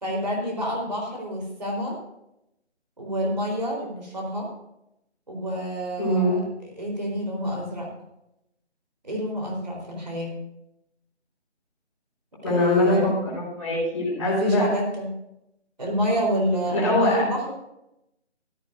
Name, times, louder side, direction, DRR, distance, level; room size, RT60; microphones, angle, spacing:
voice 1, 0.0-2.0 3.0-4.5 5.3-6.4 6.8-7.9 9.0-10.4 12.5-13.1 14.2-15.1 15.8-17.5, equal, 40° right, 0 dB, 3.9 m, -28 dB
voice 2, 6.0-6.4 12.4-14.6 16.7-17.2, left 1 dB, 15° left, -9 dB, 4.3 m, -23 dB
15.5 x 14.0 x 2.6 m, 0.82 s
figure-of-eight pair, 180°, 34 cm